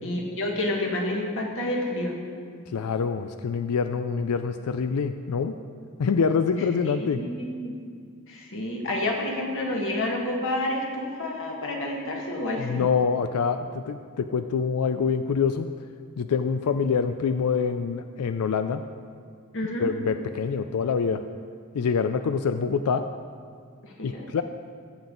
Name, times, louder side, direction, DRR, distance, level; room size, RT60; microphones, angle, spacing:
voice 1, 0.0-2.2 6.8-7.7 8.3-12.8 19.5-19.9 23.8-24.3, left 1 dB, 60° left, -1 dB, 1.8 m, -29 dB
voice 2, 2.7-5.5 6.0-7.2 12.6-15.7 16.2-18.8 19.8-21.2 21.7-23.1 24.0-24.4, left 5 dB, 90° left, 9 dB, 0.4 m, -25 dB
15.0 x 7.2 x 3.9 m, 2.1 s
head